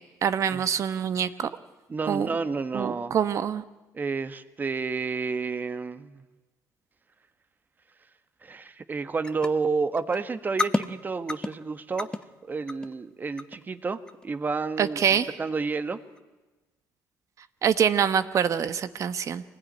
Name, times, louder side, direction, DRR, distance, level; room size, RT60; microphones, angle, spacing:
voice 1, 0.2-1.5 2.1-2.3 2.7-3.6 14.8-15.3 17.6-19.4, right 8 dB, 50° right, 13 dB, 1.1 m, -25 dB
voice 2, 1.9-3.1 3.9-6.2 8.4-12.1 12.4-15.0 15.4-16.0, right 4 dB, 25° right, 11 dB, 1.3 m, -30 dB
sound 1, 9.2-9.5 9.8-10.2 10.5-10.9 11.3-11.6 12.0-12.2 12.7-12.9 13.4-13.6 14.1-14.3 14.8-15.0 15.5-15.6 16.2-16.3, left 2 dB, 10° left, 1.0 m, -29 dB
24.0 x 19.0 x 9.5 m, 1.2 s
cardioid pair, 105°, 7 cm